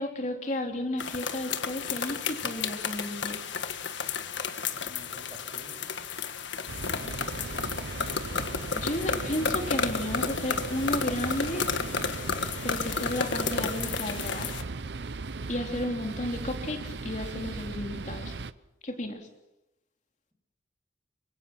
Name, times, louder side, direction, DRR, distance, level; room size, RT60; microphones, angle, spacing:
voice 1, 0.0-3.4 8.7-11.7 12.6-14.6 15.5-18.3 18.8-19.3, left 1 dB, 40° left, 3 dB, 3.2 m, -33 dB
sound 1, 1.0-14.6, left 5 dB, 75° left, 1.6 m, -32 dB
voice 2, 4.6-5.9 6.4-7.7, equal, 20° right, 2 dB, 6.8 m, -52 dB
sound 2, 6.7-18.5, right 3 dB, 65° right, 0.7 m, -37 dB
25.0 x 23.0 x 6.0 m, 0.92 s
head